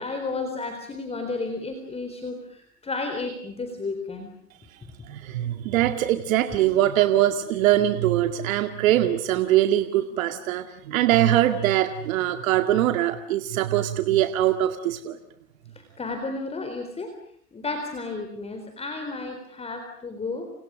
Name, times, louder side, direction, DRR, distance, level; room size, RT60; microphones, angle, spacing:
voice 1, 0.0-4.3 15.8-17.1 17.5-20.5, left 3 dB, 15° left, 6 dB, 4.0 m, -32 dB
voice 2, 5.1-15.2, right 13 dB, 60° right, 8 dB, 2.2 m, -22 dB
30.0 x 29.0 x 6.4 m, 0.65 s
hypercardioid pair, 125°, 47 cm